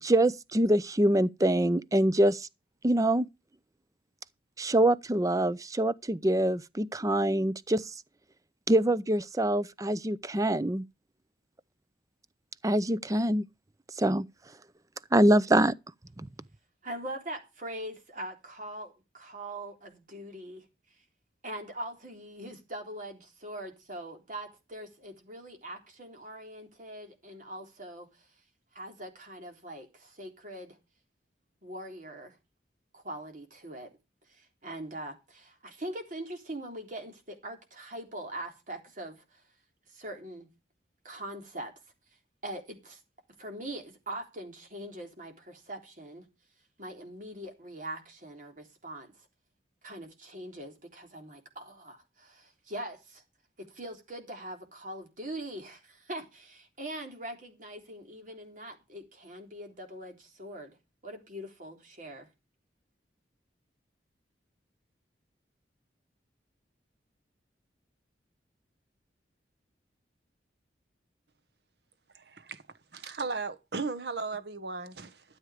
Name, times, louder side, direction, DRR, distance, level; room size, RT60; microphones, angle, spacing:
voice 1, 0.0-2.5 2.8-3.3 4.6-7.9 8.7-10.9 12.6-13.4 14.0-14.3 15.1-15.7 16.2-16.3, right 1 dB, 20° right, 0.6 m, -25 dB
voice 2, 16.8-20.7 21.4-28.3 28.7-30.8 31.6-32.4 32.9-33.9 34.3-39.4 39.9-40.5 41.0-41.7 42.4-43.0 43.4-46.3 46.8-49.3 49.8-53.2 53.6-60.8 61.0-62.3, right 1 dB, 45° right, 3.6 m, -42 dB
voice 3, 72.1-72.6 72.9-75.2, right 4 dB, 70° right, 1.3 m, -36 dB
13.0 x 8.0 x 5.0 m
head